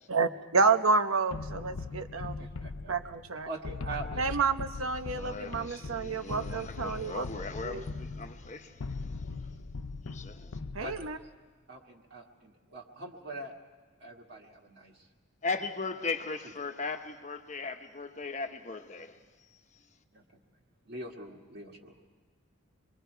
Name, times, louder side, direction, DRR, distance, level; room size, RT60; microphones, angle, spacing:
voice 1, 0.1-2.5 2.9-3.5 4.2-7.2 7.6-7.9 10.7-11.2, right 4 dB, 80° right, 0.9 m, -29 dB
sound 1, 1.3-11.2, left 3 dB, 90° left, 0.7 m, -40 dB
voice 2, 2.4-2.9 3.4-4.5 5.4-5.7 8.4-8.5 10.8-11.3 11.7-13.6 14.0-15.1 20.1-20.2 20.9-22.0, right 2 dB, 50° right, 1.9 m, -43 dB
voice 3, 5.1-9.5 10.1-10.6 15.4-19.1 19.5-19.8, left 3 dB, 35° left, 1.1 m, -38 dB
27.0 x 22.5 x 4.6 m
head